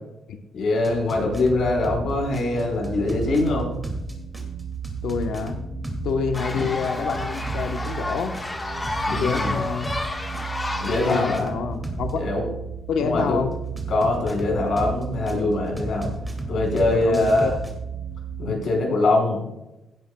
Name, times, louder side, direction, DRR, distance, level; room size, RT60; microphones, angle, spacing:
voice 1, 0.5-3.7 6.5-6.6 9.1-9.6 10.8-11.5 12.2-12.4 13.0-13.4 13.9-16.1 16.5-17.5 18.4-19.4, left 2 dB, 60° left, 0 dB, 4.6 m, -23 dB
sound 1, 0.8-2.0 2.3-6.0 6.3-10.0 10.3-12.1 13.8-15.3 15.8-17.7, right 1 dB, 10° right, 2.3 m, -33 dB
sound 2, 1.2-18.6, right 7 dB, 45° right, 1.4 m, -35 dB
voice 2, 5.0-5.6 6.0-8.3 9.1-9.9 11.0-12.1 12.9-13.5 16.9-17.5, left 6 dB, 80° left, 5 dB, 1.0 m, -27 dB
sound 3, 6.3-11.4, left 2 dB, 15° left, 1.4 m, -30 dB
17.0 x 11.0 x 2.3 m, 0.94 s
cardioid pair, 150°, 0 cm